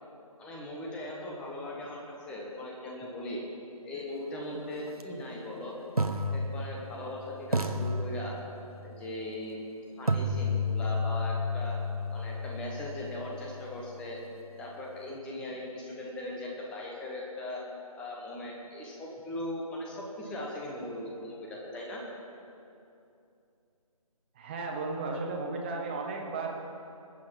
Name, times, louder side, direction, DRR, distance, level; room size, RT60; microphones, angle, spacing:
voice 1, 0.4-3.4 3.8-5.8 6.3-8.4 8.8-9.6 10.0-11.8 12.1-14.2 14.6-17.6 17.9-22.0, left 1 dB, 5° left, -2 dB, 0.9 m, -39 dB
sound 1, 4.9-5.0 6.0-7.1 7.5-8.8 10.1-14.0, left 1 dB, 80° right, 1.1 m, -32 dB
voice 2, 24.3-26.5, right 3 dB, 15° right, 0 dB, 1.2 m, -34 dB
20.5 x 7.6 x 5.9 m, 2.6 s
figure-of-eight pair, 155°, 19 cm